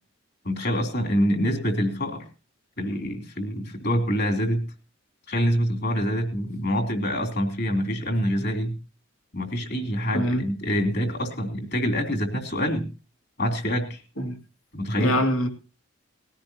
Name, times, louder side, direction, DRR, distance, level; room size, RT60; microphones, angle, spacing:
voice 1, 0.4-2.2 2.8-4.6 5.3-8.8 9.3-12.9 13.4-14.0 14.7-15.2, equal, 50° left, 3.2 m, -26 dB
voice 2, 15.0-15.5, equal, 85° left, 2.5 m, -23 dB
20.0 x 16.5 x 2.8 m
head